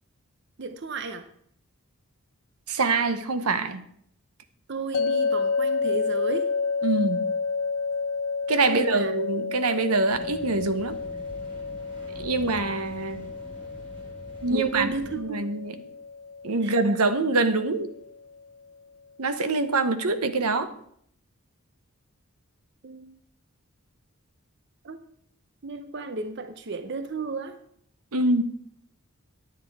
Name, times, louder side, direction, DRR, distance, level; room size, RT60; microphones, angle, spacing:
voice 1, 0.6-1.2 4.7-6.5 8.6-9.1 14.5-15.4 16.6-16.7 22.8-23.2 24.8-25.0 25.6-27.6, right 3 dB, 50° right, 9 dB, 0.6 m, -33 dB
voice 2, 2.7-3.8 6.8-7.3 8.5-11.0 12.2-13.2 14.4-14.9 15.2-15.8 16.4-17.9 19.2-20.7 28.1-28.6, right 3 dB, 85° right, 10 dB, 1.0 m, -25 dB
sound 1, 4.9-18.1, left 4 dB, 75° left, 0.6 m, -30 dB
sound 2, 10.1-15.2, right 1 dB, 20° right, 2.1 m, -44 dB
10.0 x 9.1 x 4.7 m, 0.67 s
head